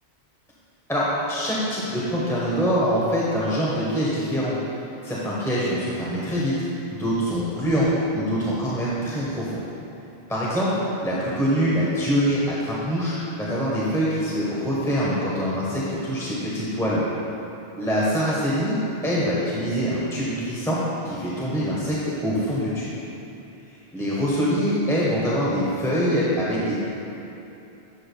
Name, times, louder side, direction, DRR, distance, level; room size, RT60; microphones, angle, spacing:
voice 1, 0.9-4.5 5.0-6.6 6.9-9.6 10.3-17.0 17.8-18.8 19.0-20.8 21.0-22.9 23.9-26.7, equal, 5° left, -8 dB, 1.1 m, -24 dB
11.5 x 7.4 x 2.3 m, 3.0 s
omnidirectional pair, 1.1 m